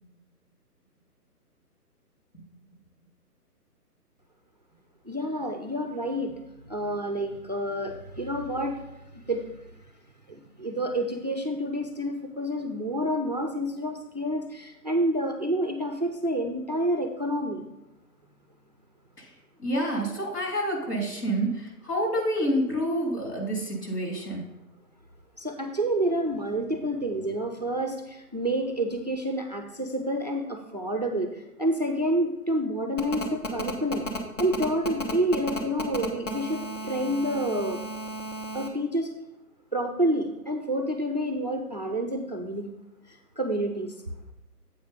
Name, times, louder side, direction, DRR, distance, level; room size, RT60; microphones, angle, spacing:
voice 1, 5.1-6.3 6.7-8.8 9.1-9.4 10.3-17.6 25.4-34.0 34.4-37.8 38.5-39.1 39.7-42.7 43.1-43.9, right 1 dB, 30° right, 5 dB, 0.4 m, -28 dB
voice 2, 19.6-24.4, equal, 75° left, -1 dB, 3.1 m, -28 dB
Telephone, 33.0-38.7, left 1 dB, 50° left, 1.3 m, -33 dB
8.0 x 4.7 x 5.2 m, 0.94 s
figure-of-eight pair, 140°, 47 cm